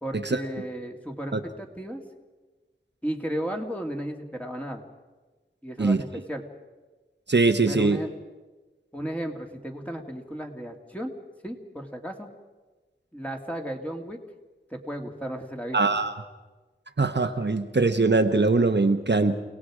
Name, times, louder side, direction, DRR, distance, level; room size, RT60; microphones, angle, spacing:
voice 1, 0.0-2.0 3.0-4.8 5.6-6.4 7.7-8.1 8.9-11.1 11.4-12.3 13.1-14.2 14.7-15.8, equal, 5° left, 2 dB, 2.4 m, -34 dB
voice 2, 7.3-8.0 15.7-16.1 17.0-19.4, right 3 dB, 60° right, 7 dB, 1.0 m, -22 dB
29.0 x 18.0 x 4.9 m, 1.2 s
wide cardioid pair, 45°, 20 cm